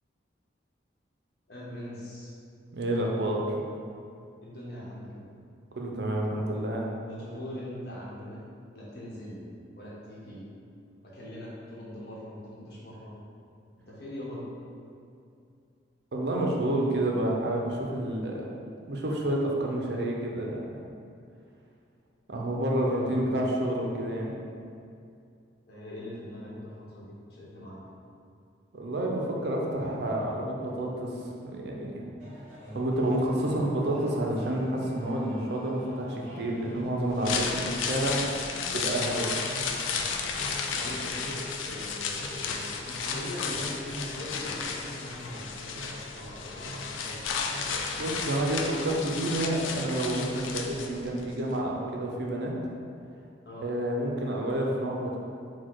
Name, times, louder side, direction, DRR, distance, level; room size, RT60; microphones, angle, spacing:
voice 1, 1.5-2.4 4.4-5.3 7.1-8.4 8.7-9.5 9.7-10.5 11.0-13.1 13.8-14.4 22.8-23.5 25.7-27.8 37.1-37.3 39.1-39.3 40.7-47.0 53.4-53.7, left 1 dB, 55° left, -7 dB, 1.0 m, -42 dB
voice 2, 2.7-3.6 5.7-6.9 16.1-18.5 18.9-20.8 22.3-24.3 28.7-32.0 32.7-38.2 38.7-39.5 48.0-52.5 53.6-55.2, right 1 dB, 60° right, -1 dB, 0.5 m, -29 dB
sound 1, 32.2-50.4, equal, 40° right, 1.0 m, -44 dB
sound 2, 37.0-51.2 51.5-51.6, left 5 dB, 90° left, 0.4 m, -33 dB
4.1 x 2.2 x 4.5 m, 2.4 s
head